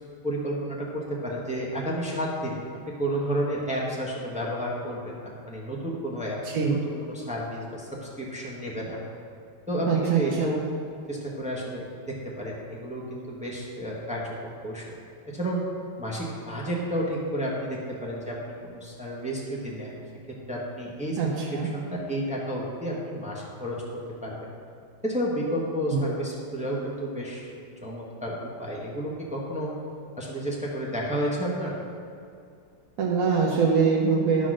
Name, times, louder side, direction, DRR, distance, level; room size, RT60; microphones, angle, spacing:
voice 1, 0.2-6.4 6.7-9.0 9.7-10.6 11.1-14.8 15.2-15.6 16.0-20.0 20.5-21.2 21.5-23.8 24.2-24.5 25.0-27.5 27.8-29.7 30.2-31.7, equal, 5° right, -4 dB, 0.8 m, -31 dB
voice 2, 6.4-6.8 9.9-10.6 21.2-21.7 25.9-26.0 33.0-34.5, right 5 dB, 55° right, -3 dB, 1.0 m, -24 dB
12.0 x 4.2 x 6.2 m, 2.3 s
omnidirectional pair, 2.4 m